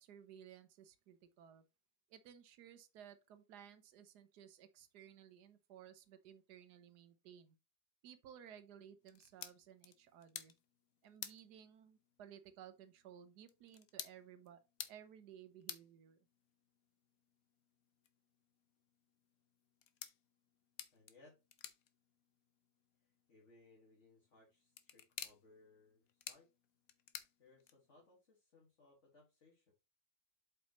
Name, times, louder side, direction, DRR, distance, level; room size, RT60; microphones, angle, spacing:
voice 1, 0.0-1.6 2.1-7.5 8.0-10.5 11.0-14.6 14.9-16.2, right 9 dB, 80° right, 1.4 m, -58 dB
sound 1, 9.0-28.1, left 10 dB, 65° left, 1.2 m, -55 dB
voice 2, 20.9-21.4 23.3-26.5 27.4-29.7, left 2 dB, 45° left, 2.3 m, -66 dB
7.7 x 5.4 x 3.0 m
omnidirectional pair, 1.7 m